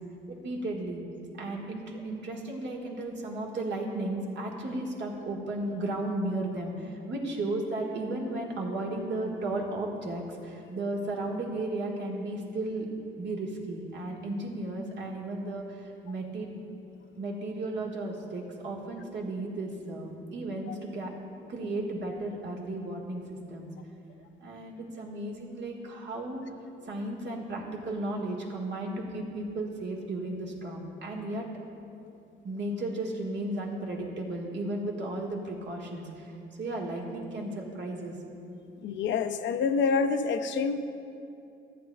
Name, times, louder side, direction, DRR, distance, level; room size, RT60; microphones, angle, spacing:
voice 1, 0.3-1.0 1.4-12.9 13.2-16.5 17.1-21.1 21.5-23.2 23.5-23.7 24.4-26.4 26.9-31.4 32.4-38.1, right 2 dB, 65° right, -2 dB, 1.7 m, -34 dB
voice 2, 38.8-40.8, left 5 dB, 70° left, 9 dB, 0.6 m, -27 dB
14.5 x 8.6 x 2.3 m, 2.6 s
cardioid pair, 90°, 20 cm